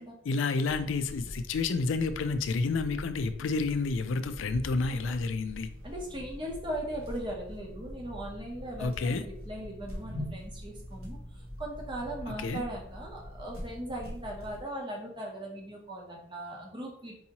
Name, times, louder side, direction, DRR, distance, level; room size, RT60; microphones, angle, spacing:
voice 1, 0.3-5.7 8.8-9.2 12.4-12.6, left 4 dB, 65° left, 10 dB, 0.4 m, -30 dB
sound 1, 0.6-14.6, equal, 85° right, 1.1 m, -43 dB
voice 2, 5.8-17.1, right 1 dB, 25° right, 0 dB, 0.8 m, -39 dB
4.6 x 2.7 x 2.9 m, 0.70 s
head